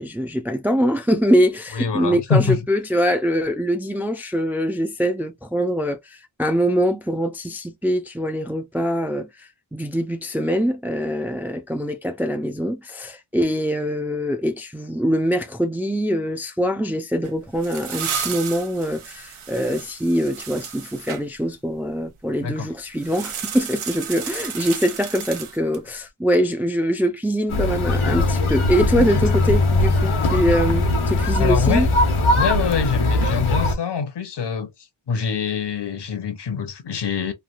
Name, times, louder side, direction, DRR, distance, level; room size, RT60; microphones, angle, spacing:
voice 1, 0.0-31.9, equal, 5° right, 0.4 m, -23 dB
voice 2, 1.7-2.6 22.4-22.7 29.0-29.3 31.4-31.9 32.4-34.7 35.1-37.3, left 6 dB, 55° left, 0.8 m, -24 dB
sound 1, 17.2-21.2 23.0-25.9, right 7 dB, 85° right, 0.8 m, -33 dB
sound 2, 27.5-33.8, left 2 dB, 85° left, 1.1 m, -20 dB
3.2 x 2.3 x 2.4 m
wide cardioid pair, 100°, 48 cm